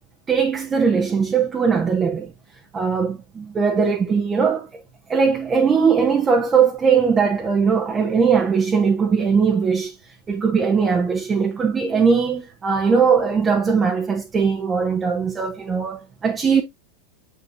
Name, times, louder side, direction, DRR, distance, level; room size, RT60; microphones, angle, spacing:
voice 1, 0.3-2.3 2.7-4.8 5.1-9.9 10.3-16.6, right 6 dB, 20° right, 1.2 m, -20 dB
7.9 x 5.6 x 2.8 m
figure-of-eight pair, 90°, 0 cm